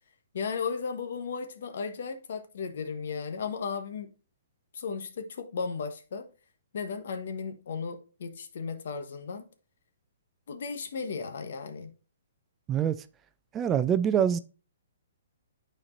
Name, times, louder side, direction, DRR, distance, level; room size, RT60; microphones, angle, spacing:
voice 1, 0.3-4.1 4.7-6.3 6.7-9.4 10.5-11.9, left 5 dB, 65° left, 1.1 m, -35 dB
voice 2, 12.7-13.0 13.5-14.4, right 9 dB, 20° right, 0.4 m, -25 dB
9.7 x 4.4 x 2.5 m
hypercardioid pair, 135°, 0 cm